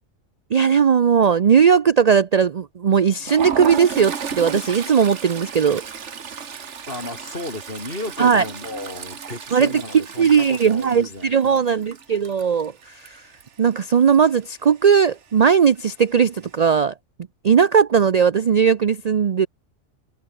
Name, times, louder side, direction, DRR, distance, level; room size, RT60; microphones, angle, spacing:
voice 1, 0.5-5.8 8.2-8.4 9.5-13.2 13.6-16.9 17.4-19.5, right 7 dB, 45° right, 0.5 m, -18 dB
Toilet flush, 3.0-13.7 14.0-14.2 14.5-14.7 15.7-16.2, right 6 dB, 70° right, 1.7 m, -34 dB
voice 2, 6.9-11.6, left 2 dB, 50° left, 4.9 m, -34 dB
omnidirectional pair, 1.3 m